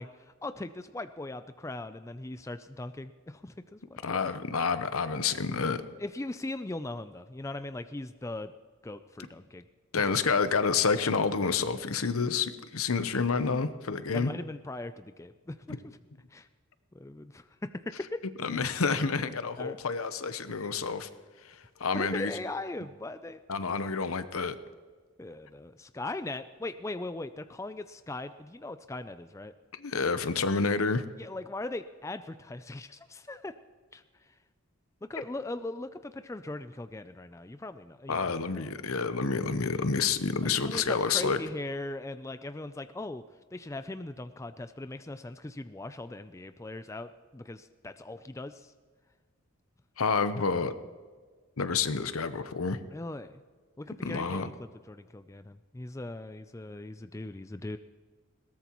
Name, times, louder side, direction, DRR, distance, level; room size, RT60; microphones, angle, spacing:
voice 1, 0.0-4.3 6.0-8.5 8.8-9.6 14.1-15.8 16.3-16.5 16.9-18.2 19.6-19.8 21.9-23.4 25.2-29.5 31.2-33.5 33.9-34.0 35.1-38.7 40.4-43.2 43.5-48.7 52.9-53.4 53.8-57.8, left 2 dB, 15° left, 10 dB, 0.3 m, -39 dB
voice 2, 4.0-5.8 9.9-14.3 15.7-15.8 18.4-21.1 21.4-22.3 23.5-24.6 29.7-31.0 38.1-41.4 50.0-50.7 51.6-52.8 54.0-54.5, left 5 dB, 85° left, 11 dB, 0.8 m, -29 dB
20.5 x 17.5 x 3.0 m, 1.5 s
head